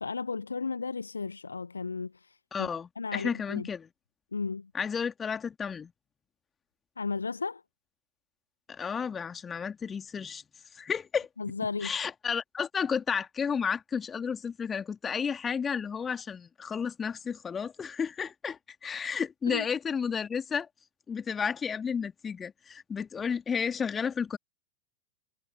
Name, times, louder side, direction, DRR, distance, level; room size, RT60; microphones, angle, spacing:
voice 1, 0.0-2.7 3.0-3.7 4.3-4.7 7.0-7.6 11.4-11.9 19.4-19.7, left 4 dB, 75° left, 1.1 m, -34 dB
voice 2, 2.5-3.9 4.7-5.9 8.7-10.4 10.7-11.3 11.8-20.7 21.1-24.4, left 6 dB, 20° left, 2.3 m, -32 dB
figure-of-eight pair, 90°, 0 cm